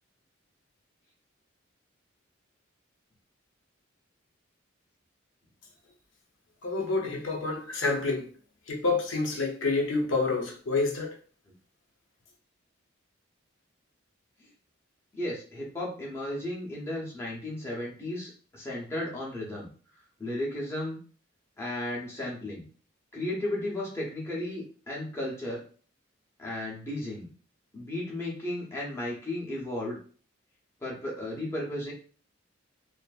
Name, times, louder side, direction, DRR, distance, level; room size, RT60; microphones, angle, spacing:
voice 1, 6.6-8.3 8.7-11.2, left 3 dB, 75° left, 0.7 m, -28 dB
voice 2, 15.1-19.7 20.2-21.0 21.6-22.7 23.1-25.6 26.4-27.3 27.7-30.0 30.8-31.9, left 1 dB, 10° left, 0.7 m, -34 dB
2.6 x 2.4 x 2.3 m
head